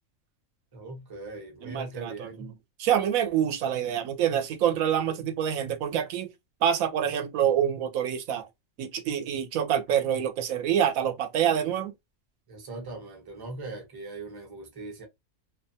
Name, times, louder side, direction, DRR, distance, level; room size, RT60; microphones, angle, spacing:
voice 1, 0.7-2.5 12.5-15.0, right 3 dB, 25° right, 0.6 m, -40 dB
voice 2, 1.6-2.5 2.8-6.3 6.6-8.5 8.8-11.9, right 9 dB, 90° right, 1.0 m, -26 dB
2.6 x 2.2 x 2.6 m
omnidirectional pair, 1.4 m